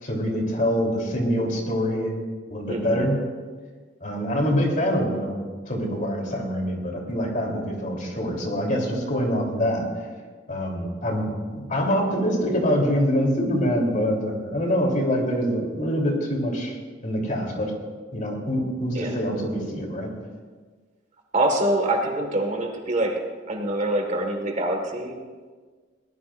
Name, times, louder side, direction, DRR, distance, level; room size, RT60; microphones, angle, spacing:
voice 1, 0.0-2.1 2.5-3.2 4.0-5.4 5.7-9.9 10.5-16.8 17.0-17.7 18.1-20.1, equal, 45° left, 0 dB, 3.5 m, -25 dB
voice 2, 2.7-3.1 18.9-19.2 21.3-23.2 23.5-25.2, right 1 dB, 40° right, 2 dB, 1.8 m, -25 dB
22.5 x 18.5 x 2.6 m, 1.5 s
head